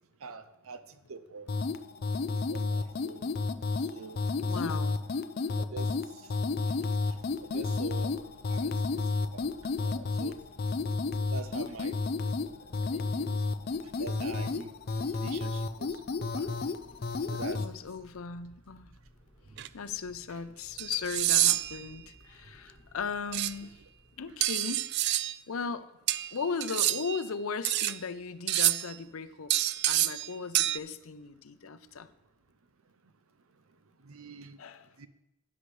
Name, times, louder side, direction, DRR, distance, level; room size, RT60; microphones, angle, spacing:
voice 1, 0.2-1.5 2.5-3.2 3.8-4.2 4.5-4.6 5.6-6.3 7.4-8.1 8.5-10.4 11.3-12.0 12.9-13.3 14.0-14.7 15.2-16.5 17.3-17.7 19.5-19.6 20.3-20.4 34.0-34.6 35.0-35.1, right 4 dB, 80° right, 0.7 m, -44 dB
sound 1, 1.5-17.7, left 3 dB, 45° left, 0.4 m, -32 dB
voice 2, 4.5-5.0 17.5-18.9 19.7-23.8 24.2-24.9 25.5-25.9 26.3-32.1 34.6-34.9, left 5 dB, 85° left, 0.6 m, -37 dB
sound 2, 6.4-24.7, equal, 25° left, 1.1 m, -58 dB
sound 3, 19.6-19.7 20.8-21.8 23.3-23.5 24.4-25.4 26.1-27.2 27.6-28.0 28.5-28.9 29.5-30.3 30.5-30.8, right 15 dB, 55° right, 0.3 m, -27 dB
13.0 x 9.7 x 3.3 m
head